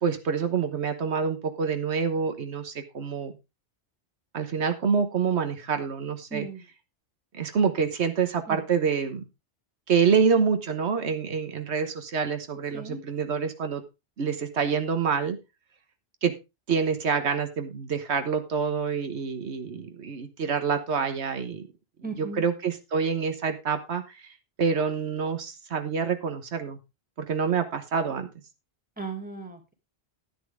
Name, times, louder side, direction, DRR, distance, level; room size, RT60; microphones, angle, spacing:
voice 1, 0.0-3.3 4.3-6.5 7.3-9.3 9.9-13.8 14.2-15.4 16.2-16.3 16.7-21.7 22.2-24.3 24.6-26.8 27.2-28.3, right 6 dB, 85° right, 8 dB, 1.5 m, -27 dB
voice 2, 6.3-6.7 8.5-8.6 12.7-13.0 22.0-22.5 29.0-29.7, right 4 dB, 10° right, 5 dB, 2.5 m, -37 dB
10.5 x 10.0 x 3.5 m, 0.25 s
omnidirectional pair, 1.1 m